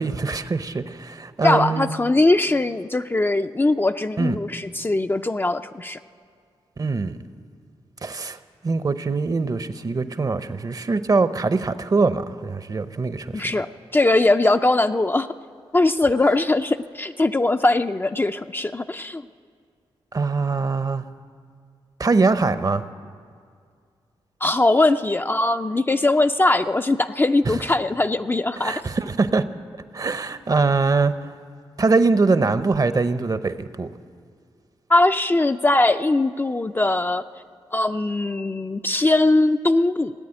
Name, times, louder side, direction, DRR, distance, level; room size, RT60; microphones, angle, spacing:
voice 1, 0.0-1.9 4.2-4.4 6.8-7.2 8.0-8.4 8.6-13.5 20.1-21.0 22.0-22.8 27.5-27.6 28.6-29.4 29.9-31.1 31.8-33.9, right 4 dB, 35° right, 12 dB, 0.7 m, -22 dB
voice 2, 1.4-6.0 13.3-15.3 15.7-19.3 24.4-28.8 34.9-37.2 37.7-40.1, left 2 dB, 20° left, 8 dB, 0.4 m, -20 dB
17.0 x 8.4 x 9.9 m, 2.2 s
cardioid pair, 60°, 10 cm